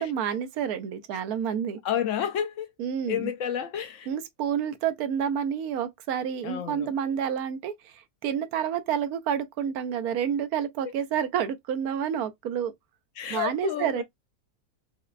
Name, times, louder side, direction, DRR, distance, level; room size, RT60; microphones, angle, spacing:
voice 1, 0.0-1.8 2.8-3.3 4.1-7.9 8.2-12.7 13.3-14.0, right 8 dB, 85° right, 1.1 m, -29 dB
voice 2, 1.8-2.7 3.1-4.1 6.4-6.9 10.8-10.9 13.2-14.0, left 9 dB, 65° left, 0.9 m, -30 dB
4.9 x 2.1 x 2.4 m
omnidirectional pair, 1.5 m